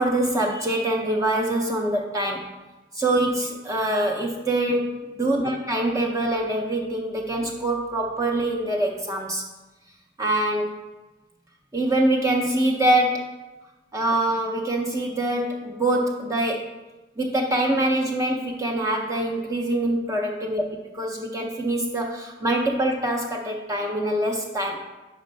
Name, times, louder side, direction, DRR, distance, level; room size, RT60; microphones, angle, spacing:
voice 1, 0.0-2.5 2.9-4.9 5.2-9.4 10.2-10.8 11.7-13.2 13.9-16.7 17.2-20.6 21.0-24.8, right 1 dB, 15° right, 0 dB, 0.4 m, -24 dB
5.3 x 4.2 x 5.2 m, 1.1 s
head